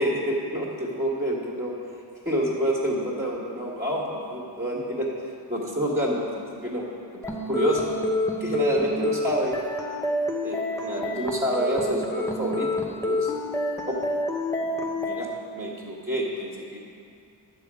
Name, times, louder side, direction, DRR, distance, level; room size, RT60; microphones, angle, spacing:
voice 1, 0.0-1.7 2.3-5.1 5.5-6.8 7.2-7.9 8.4-9.6 10.4-13.3 13.9-14.0 14.6-15.3 15.5-16.8, equal, 15° right, -6 dB, 1.8 m, -28 dB
sound 1, 7.2-15.2, left 1 dB, 5° left, 0.8 m, -28 dB
10.5 x 4.6 x 7.6 m, 2.3 s
wide cardioid pair, 100°, 45 cm